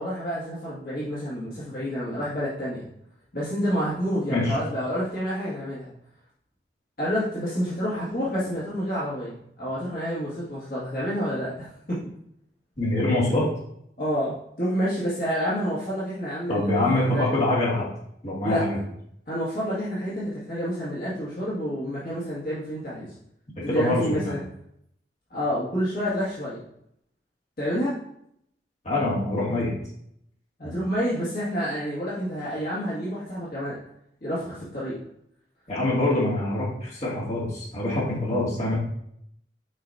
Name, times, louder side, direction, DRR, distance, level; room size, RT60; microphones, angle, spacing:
voice 1, 0.0-2.8 3.3-5.9 7.0-12.0 14.0-16.8 17.1-17.3 18.4-18.6 19.3-23.1 23.6-24.4 25.3-26.6 27.6-28.0 30.6-33.8 34.2-35.0, equal, 55° left, -9 dB, 1.9 m, -28 dB
voice 2, 12.8-13.5 16.5-17.9 18.2-18.8 23.7-24.4 28.8-29.7 30.6-30.7 35.7-38.7, left 1 dB, 40° left, -6 dB, 2.4 m, -24 dB
8.2 x 5.0 x 2.7 m, 0.72 s
head